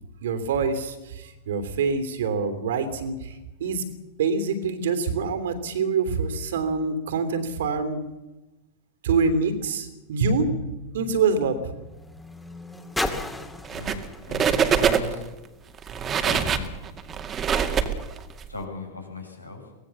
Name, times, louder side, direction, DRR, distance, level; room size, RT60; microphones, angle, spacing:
voice 1, 0.2-3.9 4.2-8.0 9.0-11.7, right 4 dB, 60° right, 9 dB, 3.2 m, -25 dB
sound 1, 9.5-15.9 16.8-16.9, left 1 dB, 5° left, 2.5 m, -37 dB
sound 2, 13.6-14.1 14.3-15.3 15.8-18.5, right 7 dB, 25° right, 2.2 m, -24 dB
voice 2, 14.3-15.2 16.2-16.7 18.5-19.6, left 3 dB, 85° left, 2 dB, 6.6 m, -37 dB
23.5 x 19.0 x 7.2 m, 1.0 s
figure-of-eight pair, 90°, 0 cm